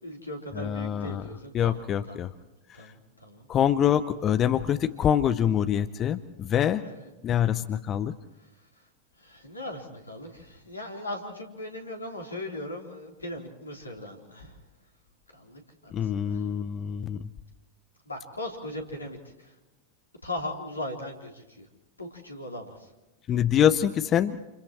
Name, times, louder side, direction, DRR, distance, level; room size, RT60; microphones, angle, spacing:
voice 1, 0.0-1.8 2.1-2.3 2.7-3.5 6.8-7.1 9.2-14.5 15.3-16.5 18.1-19.5 20.2-21.7 22.0-22.9, left 1 dB, 80° left, 1 dB, 3.6 m, -39 dB
voice 2, 0.5-1.2 1.5-2.3 2.7-2.9 3.5-6.9 7.2-8.2 15.9-17.3 23.3-24.4, left 9 dB, 30° left, 12 dB, 0.7 m, -25 dB
29.0 x 29.0 x 3.1 m, 1.0 s
figure-of-eight pair, 90°, 0 cm